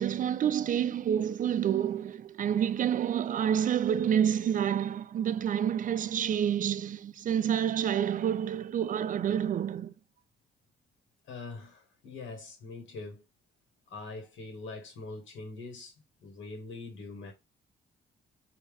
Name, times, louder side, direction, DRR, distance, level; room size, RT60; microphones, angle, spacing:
voice 1, 0.0-9.9, right 9 dB, 40° right, 0.4 m, -28 dB
voice 2, 11.3-13.2 13.9-15.9 16.2-17.3, left 3 dB, 75° left, 1.6 m, -43 dB
5.5 x 2.7 x 3.4 m
cardioid pair, 90°, 20 cm